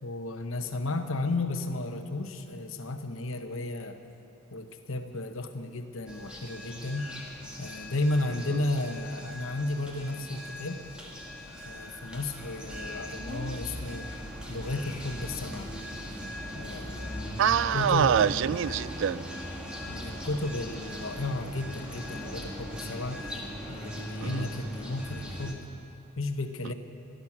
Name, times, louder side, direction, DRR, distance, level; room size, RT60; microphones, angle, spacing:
voice 1, 0.0-4.0 4.5-7.1 7.6-10.8 11.6-14.1 14.5-15.8 16.5-18.2 19.9-23.3 23.7-25.7 26.2-26.7, left 2 dB, 70° left, 7 dB, 1.0 m, -33 dB
sound 1, 6.1-25.5, equal, 5° right, 1.5 m, -39 dB
voice 2, 17.4-19.3 24.2-24.4, right 8 dB, 60° right, 18 dB, 0.3 m, -25 dB
16.5 x 11.5 x 6.1 m, 2.9 s
head